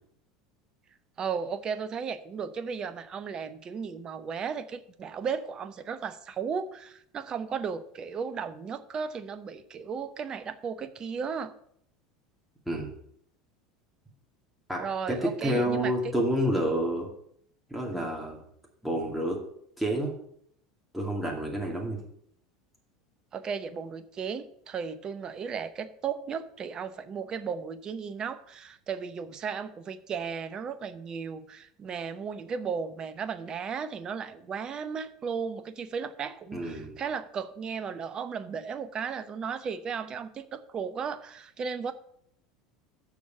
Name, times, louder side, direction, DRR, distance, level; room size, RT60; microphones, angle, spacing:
voice 1, 1.2-11.5 14.8-15.9 17.9-18.1 23.3-41.9, right 6 dB, 35° right, 12 dB, 0.8 m, -35 dB
voice 2, 14.7-17.1 17.7-18.4 18.8-19.4 19.8-20.1 20.9-22.0 36.5-36.9, equal, ahead, -3 dB, 2.4 m, -29 dB
7.0 x 6.4 x 6.8 m, 0.67 s
figure-of-eight pair, 75°, 2 cm